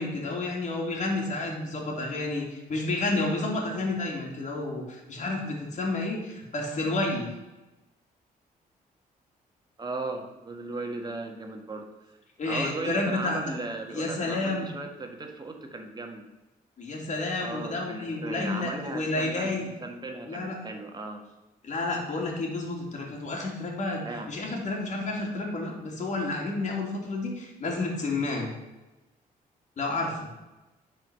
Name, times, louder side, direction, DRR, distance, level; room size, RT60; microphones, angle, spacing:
voice 1, 0.0-7.3 12.4-13.5 13.9-14.7 16.8-19.7 20.3-20.6 21.6-28.5 29.8-30.3, left 2 dB, 50° left, -1 dB, 2.8 m, -30 dB
voice 2, 9.8-11.9 12.4-16.3 17.4-19.5 19.8-21.2 24.0-24.3, right 2 dB, 25° right, 3 dB, 1.6 m, -36 dB
10.0 x 4.8 x 6.4 m, 1.0 s
cardioid pair, 105°, 16 cm